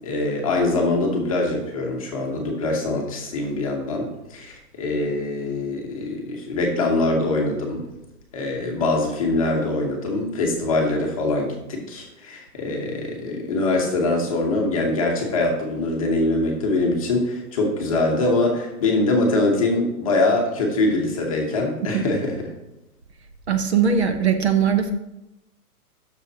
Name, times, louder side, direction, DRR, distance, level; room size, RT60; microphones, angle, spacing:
voice 1, 0.0-7.8 8.3-22.5, left 2 dB, 20° left, 0 dB, 0.9 m, -23 dB
voice 2, 23.5-24.9, right 7 dB, 45° right, 6 dB, 0.8 m, -20 dB
11.5 x 6.4 x 2.8 m, 0.91 s
hypercardioid pair, 175°, 46 cm